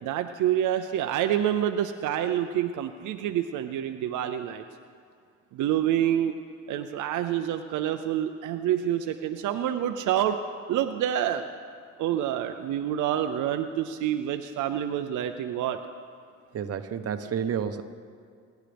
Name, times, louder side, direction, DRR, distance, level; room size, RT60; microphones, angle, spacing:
voice 1, 0.0-4.6 5.5-6.3 6.7-10.4 10.7-11.4 12.0-15.8, right 11 dB, 85° right, 7 dB, 0.6 m, -27 dB
voice 2, 16.5-17.8, right 8 dB, 55° right, 8 dB, 1.0 m, -30 dB
24.5 x 10.5 x 3.4 m, 2.2 s
cardioid pair, 90°, 30 cm